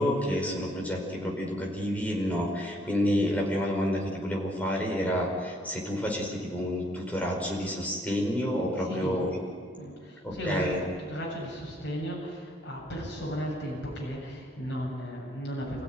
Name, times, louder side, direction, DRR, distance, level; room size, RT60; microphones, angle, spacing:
voice 1, 0.0-9.3 10.4-10.8, equal, 10° left, -1 dB, 5.1 m, -29 dB
voice 2, 8.8-9.3 9.8-15.8, equal, 60° left, -3 dB, 7.9 m, -35 dB
28.0 x 16.0 x 9.9 m, 2.1 s
head